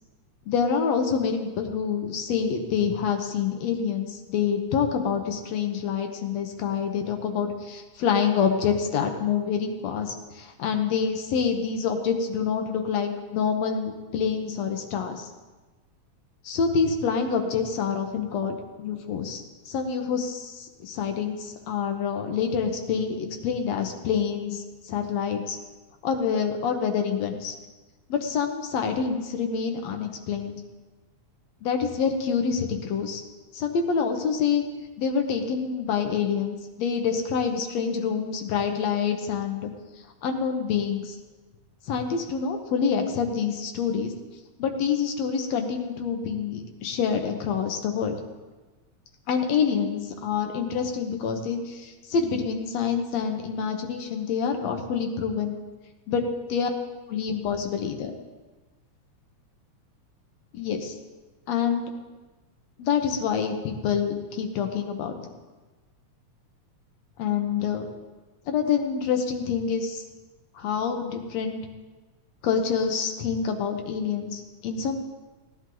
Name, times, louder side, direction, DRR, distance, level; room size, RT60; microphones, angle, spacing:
voice 1, 0.5-15.3 16.4-25.6 26.0-27.6 28.1-30.6 31.6-33.2 33.5-34.6 35.0-39.7 40.2-41.2 41.9-44.1 44.6-48.2 49.3-55.5 56.1-56.2 56.5-56.7 57.1-58.1 60.6-61.0 61.5-61.9 62.8-65.2 67.2-67.9 68.5-70.0 70.6-71.6 72.4-75.0, left 6 dB, 70° left, 5 dB, 2.1 m, -27 dB
18.5 x 11.0 x 3.9 m, 1.2 s
omnidirectional pair, 3.3 m